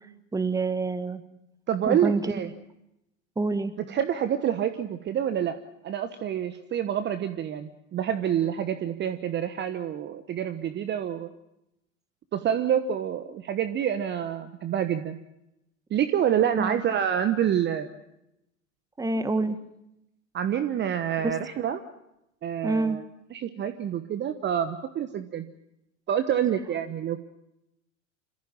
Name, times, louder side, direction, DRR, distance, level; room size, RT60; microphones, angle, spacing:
voice 1, 0.3-1.2 1.9-2.2 3.3-3.7 16.6-16.8 19.0-19.6 21.2-21.4 22.6-23.0, right 3 dB, 10° right, 12 dB, 1.6 m, -27 dB
voice 2, 1.7-2.5 3.9-5.6 5.8-11.3 12.3-15.2 15.9-17.9 20.3-21.8 22.4-23.0 23.3-25.5 26.1-27.2, right 9 dB, 25° right, 10 dB, 1.1 m, -27 dB
26.5 x 15.0 x 8.8 m, 0.85 s
figure-of-eight pair, 85°, 39 cm